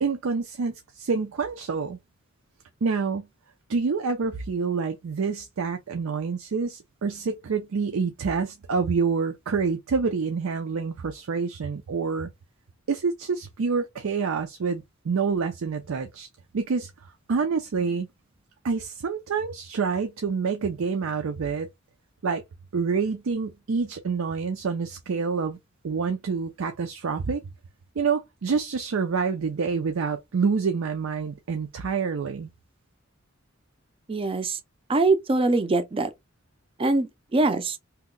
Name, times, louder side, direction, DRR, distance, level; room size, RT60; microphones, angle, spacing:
voice 1, 0.0-2.0 2.8-3.3 3.7-12.3 12.9-16.3 16.5-16.9 17.3-18.1 18.6-21.7 22.2-22.4 22.7-25.6 25.8-27.4 28.0-32.5, right 5 dB, 85° right, 0.5 m, -27 dB
voice 2, 34.1-34.6 34.9-36.1 36.8-37.8, right 3 dB, 25° right, 0.4 m, -23 dB
2.9 x 2.1 x 3.6 m
head